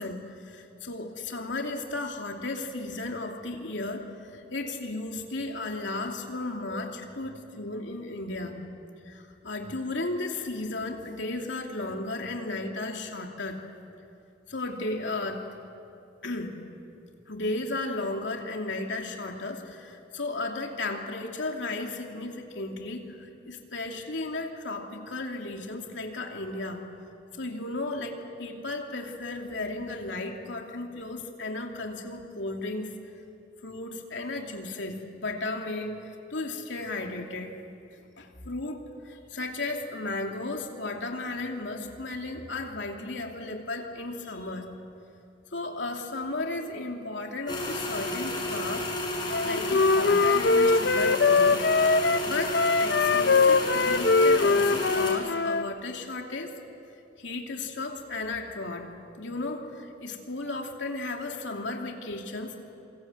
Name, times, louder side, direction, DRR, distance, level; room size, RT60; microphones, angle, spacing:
voice 1, 0.0-8.6 9.0-13.6 14.5-15.6 16.2-16.6 17.3-26.8 27.3-32.9 33.6-37.6 38.2-44.7 45.5-51.6 52.2-56.6 57.2-58.9 59.2-62.6, left 2 dB, 80° left, 2 dB, 2.9 m, -34 dB
sound 1, 47.5-55.1, left 1 dB, 25° left, 5.4 m, -32 dB
Wind instrument woodwind instrument, 49.3-55.7, left 4 dB, 60° left, 0.6 m, -22 dB
27.5 x 25.0 x 7.9 m, 2.6 s
head